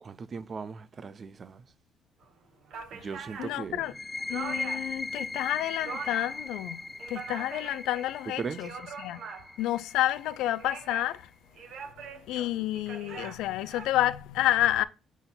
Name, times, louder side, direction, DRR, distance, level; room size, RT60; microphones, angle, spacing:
voice 1, 0.0-1.6 2.9-3.8 8.4-8.6, right 5 dB, 40° right, 0.6 m, -38 dB
sound 1, 2.2-2.3 2.6-5.0 5.4-6.5 6.8-8.1 8.4-9.7 10.4-11.2 11.6-13.9, right 6 dB, 70° right, 1.4 m, -43 dB
voice 2, 3.4-3.9 4.3-6.8 7.1-8.7 9.0-9.2 9.6-11.3 12.1-14.8, left 14 dB, 90° left, 0.4 m, -29 dB
sound 2, 3.8-11.2, left 3 dB, 20° left, 0.3 m, -39 dB
7.0 x 4.1 x 3.9 m
cardioid pair, 95°, 0 cm